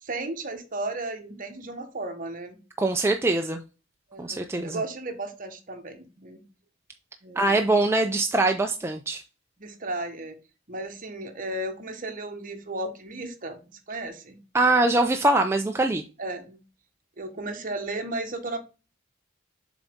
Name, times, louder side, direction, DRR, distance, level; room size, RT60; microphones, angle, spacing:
voice 1, 0.0-2.6 4.1-6.4 7.2-7.6 9.6-10.4 10.7-14.4 16.2-16.6 17.2-18.6, right 2 dB, 45° right, 1.2 m, -34 dB
voice 2, 2.8-3.6 4.2-4.8 7.4-9.2 14.5-16.0, right 2 dB, 15° right, 0.4 m, -23 dB
7.1 x 4.0 x 3.5 m
head